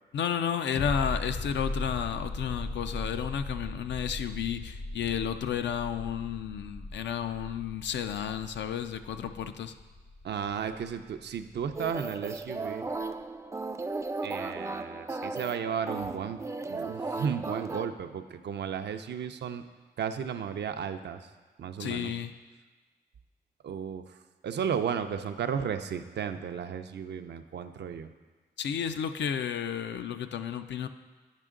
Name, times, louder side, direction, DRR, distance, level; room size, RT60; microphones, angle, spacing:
voice 1, 0.1-9.7 21.8-22.3 28.6-30.9, left 8 dB, 85° left, 9 dB, 0.4 m, -32 dB
sound 1, 0.7-12.1 12.4-12.5, left 2 dB, 60° left, 0.8 m, -39 dB
voice 2, 10.2-12.9 14.2-16.4 16.7-19.6 20.0-21.3 21.6-22.1 23.6-24.2 24.4-28.1, right 7 dB, 70° right, 8 dB, 0.5 m, -34 dB
sound 2, 11.8-17.9, right 3 dB, 15° right, 0.3 m, -36 dB
9.1 x 5.1 x 3.7 m, 1.3 s
cardioid pair, 65°, 18 cm